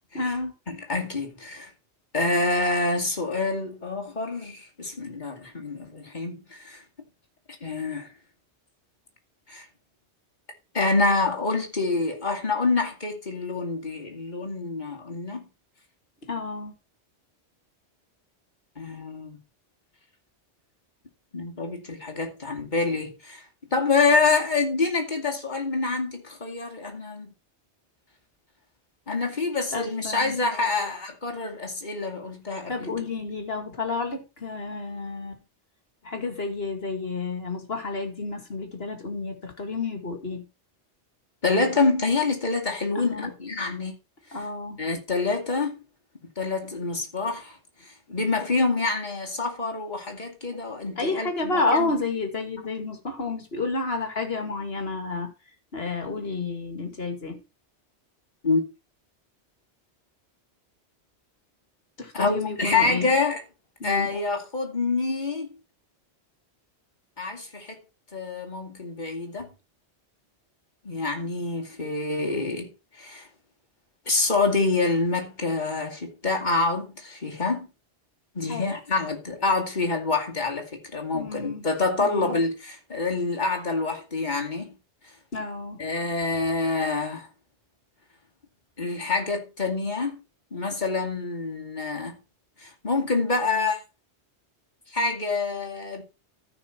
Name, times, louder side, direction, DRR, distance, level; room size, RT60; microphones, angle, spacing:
voice 1, 0.1-0.5 16.2-16.7 29.7-30.3 32.7-35.4 36.0-40.4 43.0-43.3 44.3-44.8 51.0-55.3 55.7-57.4 62.0-63.1 63.8-64.1 78.5-78.7 81.1-81.6 82.0-82.4 85.3-85.8, left 3 dB, 60° left, 2.5 m, -30 dB
voice 2, 0.7-1.7 2.1-6.8 7.6-8.1 9.5-9.7 10.7-15.5 18.8-19.4 21.3-23.5 23.7-27.3 29.1-33.1 41.4-44.0 44.3-44.5 44.8-45.8 46.4-47.6 47.8-52.0 58.4-58.6 62.1-63.4 63.8-65.5 67.2-67.8 68.1-69.5 70.8-72.7 73.0-73.3 74.1-77.7 78.3-84.8 85.8-87.3 88.8-90.2 90.5-92.2 92.6-93.8 94.9-96.0, left 3 dB, 40° left, 2.5 m, -26 dB
14.0 x 6.0 x 4.5 m
omnidirectional pair, 1.2 m